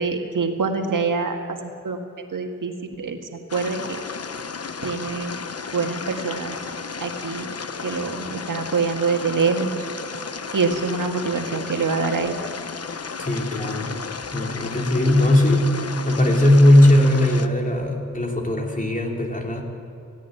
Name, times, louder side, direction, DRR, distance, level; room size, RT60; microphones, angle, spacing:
voice 1, 0.0-1.4 1.6-2.0 2.3-4.0 4.8-5.4 5.7-6.6 7.0-7.5 7.8-9.7 10.5-12.3, right 4 dB, 85° right, 4 dB, 1.8 m, -25 dB
sound 1, 3.5-17.5, left 5 dB, 50° left, 1.0 m, -33 dB
voice 2, 13.2-13.9 14.3-19.6, left 1 dB, 25° left, 1 dB, 3.3 m, -18 dB
17.0 x 16.5 x 9.2 m, 2.4 s
wide cardioid pair, 80°, 31 cm